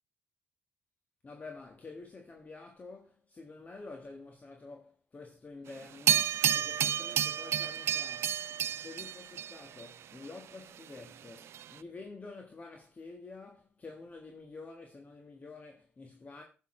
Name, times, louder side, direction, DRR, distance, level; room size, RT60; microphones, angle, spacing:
voice 1, 1.2-8.4 8.7-16.4, left 3 dB, 35° left, 1.6 m, -48 dB
sound 1, 6.1-9.9 11.5-11.6, right 10 dB, 70° right, 0.4 m, -30 dB
11.0 x 8.1 x 3.2 m
cardioid pair, 70°, 5 cm